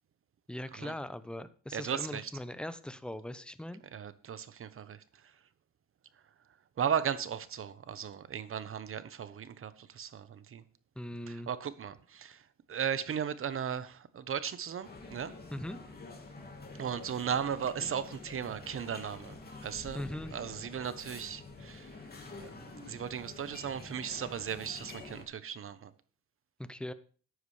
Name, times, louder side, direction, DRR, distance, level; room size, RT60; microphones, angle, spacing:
voice 1, 0.5-3.8 11.0-11.5 15.5-15.8 19.9-20.4 26.6-26.9, left 1 dB, 5° left, 0.8 m, -40 dB
voice 2, 1.7-2.2 3.9-5.0 6.8-10.6 11.3-12.4 12.7-15.3 16.8-20.0 20.3-21.9 22.4-25.9, right 8 dB, 45° right, 0.9 m, -36 dB
sound 1, 14.8-25.2, left 3 dB, 30° left, 2.6 m, -48 dB
14.0 x 9.7 x 3.3 m
cardioid pair, 90°, 30 cm